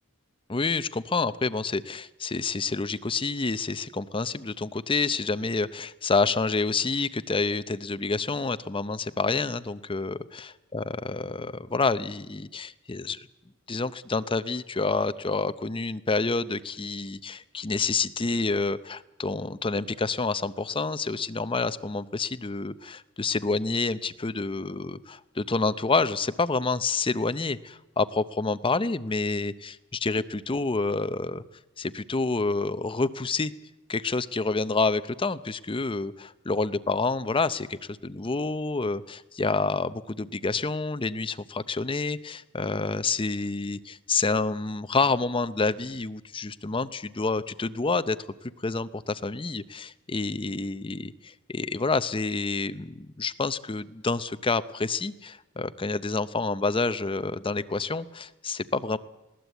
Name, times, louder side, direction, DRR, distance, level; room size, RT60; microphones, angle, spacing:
voice 1, 0.5-13.3 13.7-31.4 31.8-33.5 33.9-48.2 48.4-59.0, left 3 dB, 25° left, 13 dB, 0.6 m, -28 dB
20.5 x 17.0 x 8.2 m, 0.97 s
head